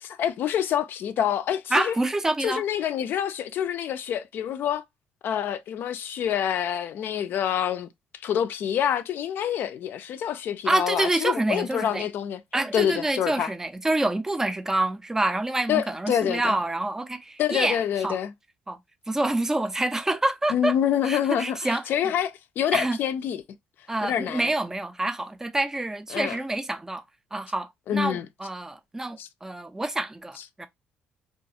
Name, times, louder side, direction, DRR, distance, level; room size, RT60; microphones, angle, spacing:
voice 1, 0.0-1.9 2.4-4.8 5.2-7.9 8.2-12.4 12.7-13.5 15.7-16.6 17.4-18.3 20.5-23.4 24.0-24.5 26.1-26.4 27.9-28.3 29.2-29.3, left 9 dB, 60° left, 0.3 m, -27 dB
voice 2, 1.7-2.6 10.7-12.1 12.5-18.2 18.7-18.8 19.1-20.7 21.0-21.8 22.7-23.0 23.9-27.0 27.3-30.7, right 2 dB, 10° right, 0.4 m, -27 dB
2.4 x 2.3 x 2.6 m
cardioid pair, 95°, 4 cm